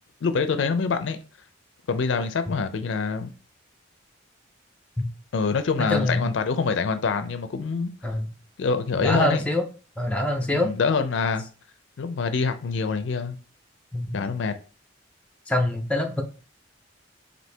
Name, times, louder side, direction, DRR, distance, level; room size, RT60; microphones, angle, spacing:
voice 1, 0.2-1.2 1.9-3.3 5.3-7.9 8.6-9.4 10.5-11.4 12.0-13.4 14.1-14.6, left 5 dB, 70° left, 0.4 m, -25 dB
voice 2, 5.9-6.3 8.0-8.3 9.0-9.6 10.0-10.7 13.9-14.2 15.5-16.2, left 1 dB, 5° left, 0.5 m, -24 dB
4.4 x 2.6 x 3.3 m
head